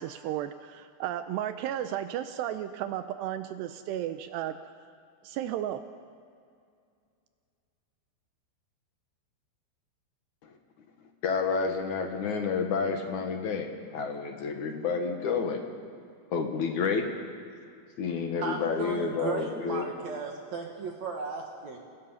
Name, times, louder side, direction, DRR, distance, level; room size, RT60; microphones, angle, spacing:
voice 1, 0.0-4.6 5.2-5.8, right 11 dB, 80° right, 10 dB, 2.6 m, -34 dB
voice 2, 11.2-15.7 16.3-17.1 18.0-19.9, left 5 dB, 60° left, 4 dB, 2.1 m, -29 dB
voice 3, 18.4-21.8, right 4 dB, 60° right, 1 dB, 1.9 m, -36 dB
29.5 x 19.0 x 5.6 m, 2.3 s
omnidirectional pair, 5.2 m